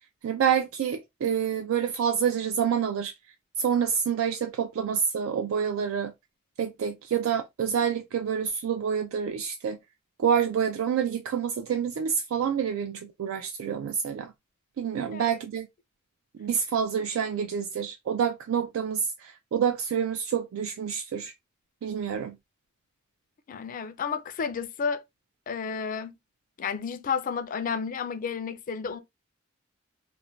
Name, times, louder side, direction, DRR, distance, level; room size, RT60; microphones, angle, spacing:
voice 1, 0.2-3.1 3.6-6.1 6.6-9.8 10.2-14.3 14.8-15.7 16.4-21.3 21.8-22.4, right 7 dB, 80° right, 0.3 m, -27 dB
voice 2, 23.5-25.0 25.5-26.1 26.6-29.0, left 6 dB, 40° left, 0.3 m, -31 dB
2.5 x 2.1 x 3.0 m
head